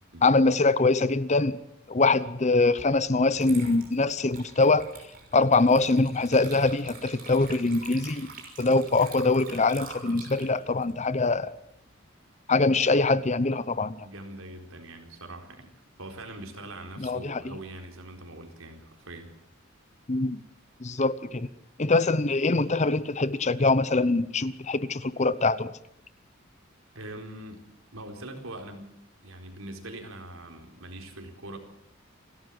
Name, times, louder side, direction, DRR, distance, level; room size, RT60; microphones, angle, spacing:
voice 1, 0.2-1.6 1.9-4.9 5.3-8.3 8.6-11.5 12.5-14.0 17.0-17.4 20.1-20.4 20.8-21.5 21.8-25.7, left 3 dB, 35° left, 17 dB, 0.8 m, -23 dB
Water / Liquid, 2.8-2.9 3.3-11.9, right 4 dB, 45° right, 6.2 m, -46 dB
voice 2, 14.0-15.7 16.0-19.3 26.9-27.6 27.9-28.9 29.2-31.6, right 1 dB, 80° right, 4 dB, 4.3 m, -42 dB
29.0 x 12.5 x 7.7 m, 0.74 s
head